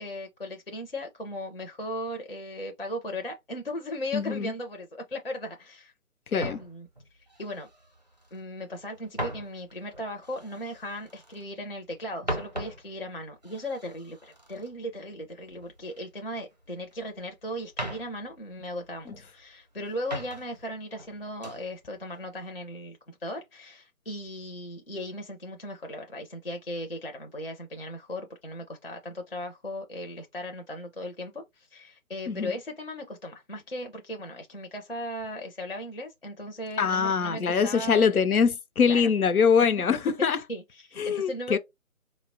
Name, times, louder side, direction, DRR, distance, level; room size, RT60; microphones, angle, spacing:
voice 1, 0.0-5.9 6.3-7.7 8.3-38.1 38.9-39.0 39.9-40.0 40.5-41.6, left 1 dB, 45° left, 0.5 m, -37 dB
voice 2, 4.1-4.5 6.3-6.6 32.3-32.5 36.8-40.4 41.0-41.6, left 6 dB, 90° left, 0.6 m, -23 dB
sound 1, 6.4-8.4 8.7-11.5 11.8-16.1 16.3-17.3 17.6-19.4 19.8-20.7 21.0-21.7 22.1-22.4, right 1 dB, 30° right, 0.5 m, -40 dB
3.9 x 2.0 x 2.5 m
figure-of-eight pair, 155°, 42 cm